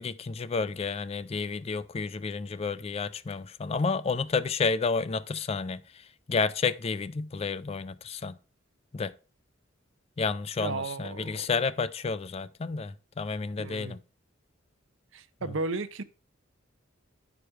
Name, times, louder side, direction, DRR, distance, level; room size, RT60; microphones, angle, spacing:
voice 1, 0.0-5.8 6.3-8.3 8.9-9.1 10.2-14.0, left 4 dB, 30° left, 0.3 m, -30 dB
voice 2, 10.6-11.5 13.6-14.0 15.1-16.0, right 3 dB, 65° right, 0.7 m, -34 dB
10.0 x 5.0 x 4.6 m
head